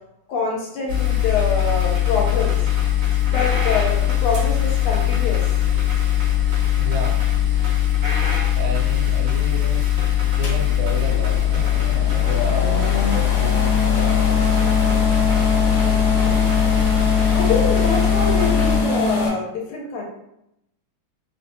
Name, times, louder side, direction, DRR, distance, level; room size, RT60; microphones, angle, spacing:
voice 1, 0.3-2.6 3.3-5.4 6.0-6.1 12.6-12.7 15.8-16.5 17.3-20.1, left 4 dB, 90° left, -1 dB, 1.5 m, -25 dB
sound 1, 0.9-18.8, left 11 dB, 45° right, 1.0 m, -20 dB
voice 2, 6.8-7.2 8.5-11.7 12.2-15.1, right 3 dB, 70° right, 0 dB, 1.3 m, -32 dB
sound 2, 10.4-19.3, left 3 dB, 70° left, 1.3 m, -23 dB
3.3 x 2.5 x 2.6 m, 0.80 s
omnidirectional pair, 2.4 m